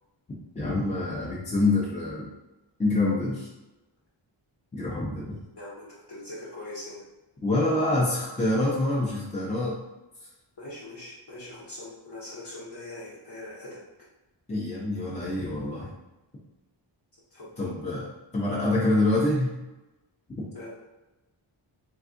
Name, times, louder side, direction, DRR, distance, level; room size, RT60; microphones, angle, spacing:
voice 1, 0.5-2.3 2.8-3.5 4.7-5.3 7.4-9.8 14.5-15.9 17.6-18.1 18.3-19.5, left 2 dB, 15° left, -6 dB, 0.5 m, -26 dB
voice 2, 5.6-7.0 10.6-13.7 17.3-17.5 20.5-20.7, left 2 dB, 55° left, -9 dB, 0.9 m, -41 dB
3.5 x 2.3 x 2.5 m, 1.0 s
wide cardioid pair, 115°, 47 cm